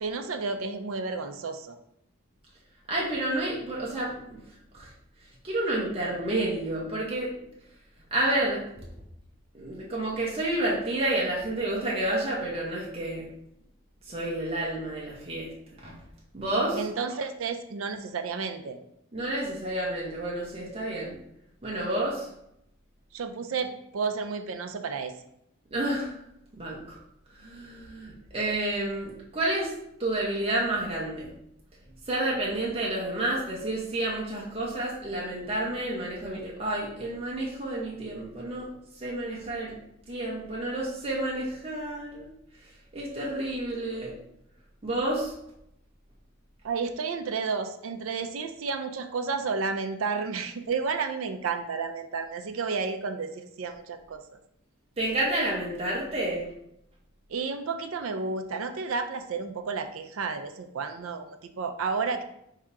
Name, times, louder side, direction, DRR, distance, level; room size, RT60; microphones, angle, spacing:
voice 1, 0.0-1.8 16.7-18.8 23.1-25.1 46.6-54.2 57.3-62.2, right 4 dB, 80° right, 8 dB, 0.5 m, -31 dB
voice 2, 2.9-4.4 4.7-4.9 5.4-7.3 8.1-8.9 9.5-13.2 14.1-15.5 15.8-15.9 16.3-16.8 19.1-21.2 21.6-22.3 25.7-26.1 26.6-27.0 27.3-29.7 30.0-31.3 32.1-38.7 39.0-39.8 40.1-42.3 42.9-44.1 44.8-45.3 55.0-56.5, right 1 dB, 30° right, -5 dB, 0.9 m, -30 dB
3.6 x 2.8 x 4.5 m, 0.78 s
head